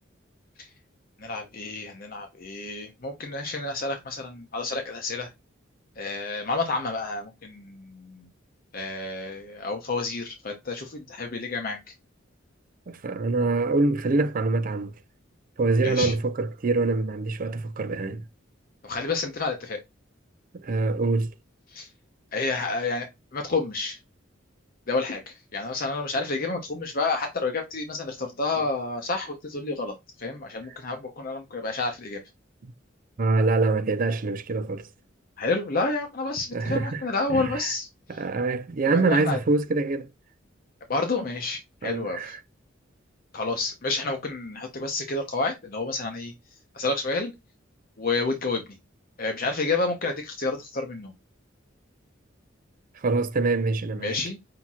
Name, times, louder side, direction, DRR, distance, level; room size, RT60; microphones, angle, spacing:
voice 1, 1.2-5.3 6.0-8.2 8.7-11.8 15.8-16.1 18.8-19.8 21.7-21.9 22.3-24.0 24.9-32.2 35.4-37.9 38.8-39.4 40.9-42.3 43.3-46.3 46.7-47.3 48.0-48.6 49.2-51.1 54.0-54.4, left 3 dB, 50° left, 0.8 m, -29 dB
voice 2, 12.9-14.9 15.6-18.2 20.5-21.3 32.6-32.7 33.2-34.9 36.5-37.0 37.3-37.7 38.1-40.1 41.8-42.4 53.0-54.2, right 3 dB, 45° right, 0.4 m, -25 dB
5.8 x 2.8 x 2.3 m
head